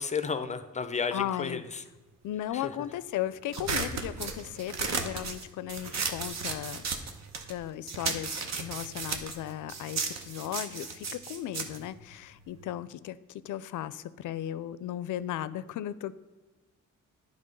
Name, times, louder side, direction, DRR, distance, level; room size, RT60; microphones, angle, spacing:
voice 1, 0.0-1.8 2.5-2.7, left 5 dB, 25° left, 11 dB, 0.5 m, -32 dB
voice 2, 1.1-1.6 2.2-6.8 7.5-16.1, left 12 dB, 75° left, 16 dB, 0.4 m, -36 dB
sound 1, 3.5-7.6 7.9-12.7, right 5 dB, 60° right, 0.9 m, -34 dB
10.5 x 3.5 x 5.2 m, 1.2 s
cardioid pair, 110°, 31 cm